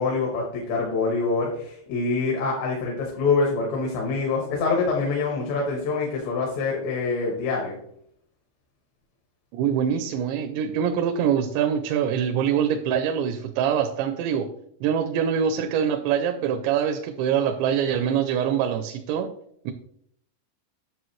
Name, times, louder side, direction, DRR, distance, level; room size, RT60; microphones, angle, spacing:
voice 1, 0.0-7.8, left 4 dB, 85° left, -2 dB, 3.8 m, -25 dB
voice 2, 9.5-14.5 14.8-19.4 19.7-19.8, right 8 dB, 90° right, 7 dB, 3.0 m, -24 dB
11.0 x 6.8 x 3.1 m, 0.68 s
omnidirectional pair, 5.0 m